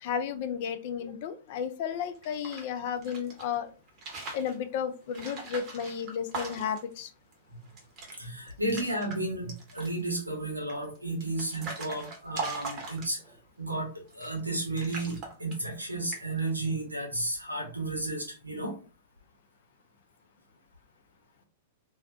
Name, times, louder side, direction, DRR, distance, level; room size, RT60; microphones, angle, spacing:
voice 1, 0.0-3.7 4.3-7.1, left 7 dB, 50° left, 10 dB, 0.3 m, -33 dB
sound 1, 2.1-3.4 3.9-4.5 5.1-6.9 7.3-7.4 7.7-8.2 8.5-9.2 9.5-10.0 10.7-13.4 14.1-14.5 14.8-15.8 16.1-16.5, right 3 dB, 35° right, 0.8 m, -40 dB
voice 2, 8.2-13.2 13.6-18.7, right 2 dB, 85° right, 0 dB, 0.9 m, -33 dB
2.4 x 2.1 x 2.5 m, 0.36 s
figure-of-eight pair, 100°, 0 cm